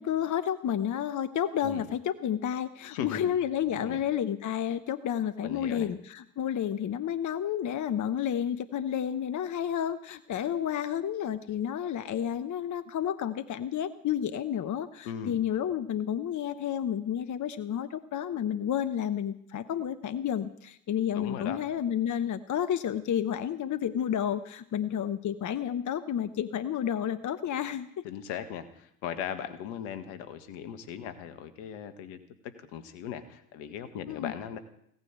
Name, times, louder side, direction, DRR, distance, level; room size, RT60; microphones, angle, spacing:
voice 1, 0.0-28.0 34.1-34.3, left 9 dB, 40° left, 13 dB, 1.0 m, -31 dB
voice 2, 2.8-3.3 3.7-4.0 5.4-5.9 15.1-15.4 21.1-21.6 28.0-34.6, left 9 dB, 70° left, 10 dB, 1.7 m, -38 dB
17.0 x 9.8 x 8.2 m, 0.72 s
hypercardioid pair, 60°, 46 cm